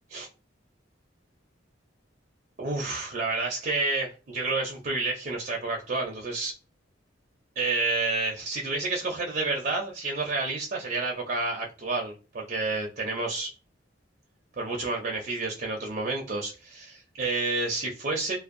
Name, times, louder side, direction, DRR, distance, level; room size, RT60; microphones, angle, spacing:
voice 1, 2.6-6.5 7.6-13.5 14.6-18.4, right 3 dB, 45° right, 0 dB, 0.4 m, -29 dB
2.5 x 2.1 x 2.5 m, 0.33 s
head